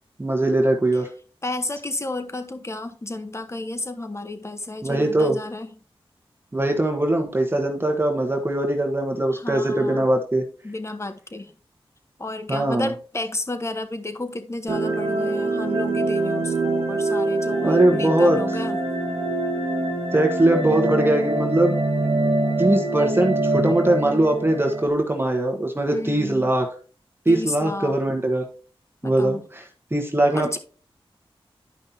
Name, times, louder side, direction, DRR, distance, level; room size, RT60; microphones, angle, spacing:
voice 1, 0.2-1.1 4.8-5.4 6.5-10.4 12.5-12.9 17.6-18.4 20.1-21.7 22.6-26.7 27.2-28.4 29.0-29.6 29.9-30.6, right 1 dB, 20° right, 1.2 m, -21 dB
voice 2, 1.4-5.7 9.3-10.1 10.6-11.5 12.2-18.8 25.9-26.5 27.3-27.9 29.0-29.5 30.3-30.6, left 2 dB, 30° left, 1.1 m, -32 dB
sound 1, 14.7-24.9, right 2 dB, 80° right, 1.4 m, -24 dB
11.5 x 5.3 x 2.8 m
wide cardioid pair, 60°, 10 cm